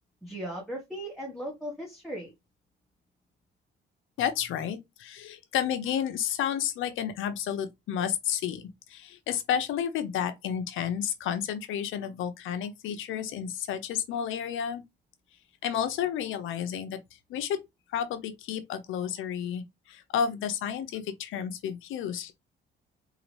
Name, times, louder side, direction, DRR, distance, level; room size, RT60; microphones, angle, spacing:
voice 1, 0.2-2.3, equal, ahead, 1.5 m, -37 dB
voice 2, 4.2-14.8 15.6-17.0 17.3-17.6 17.9-22.3, left 9 dB, 85° left, 0.9 m, -31 dB
3.9 x 3.5 x 3.3 m
cardioid pair, 90°, 20 cm